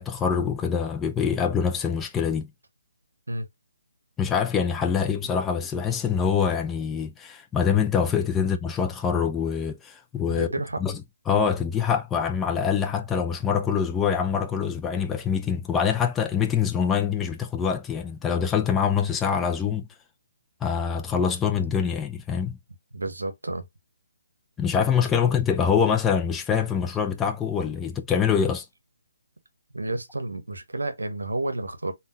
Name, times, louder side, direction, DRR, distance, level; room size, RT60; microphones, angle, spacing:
voice 1, 0.0-2.5 4.2-10.5 10.8-11.0 11.3-19.9 20.6-22.6 24.6-28.7, left 7 dB, 10° left, 0.3 m, -25 dB
voice 2, 10.3-10.8 22.9-23.6 29.7-31.9, right 2 dB, 85° right, 0.7 m, -30 dB
3.5 x 2.2 x 2.5 m
figure-of-eight pair, 145°, 0 cm